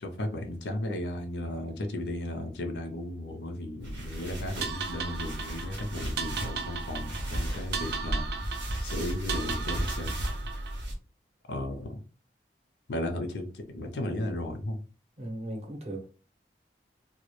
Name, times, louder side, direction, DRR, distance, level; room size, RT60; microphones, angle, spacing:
voice 1, 0.0-8.3 8.8-10.2 11.5-12.0 12.9-14.8, left 1 dB, 75° left, 0.5 m, -35 dB
sound 1, 3.8-11.0, right 1 dB, 90° right, 0.8 m, -35 dB
sound 2, 4.6-10.8, right 5 dB, 60° right, 0.3 m, -37 dB
voice 2, 15.2-16.1, right 1 dB, 35° right, 0.7 m, -37 dB
2.2 x 2.0 x 3.0 m
head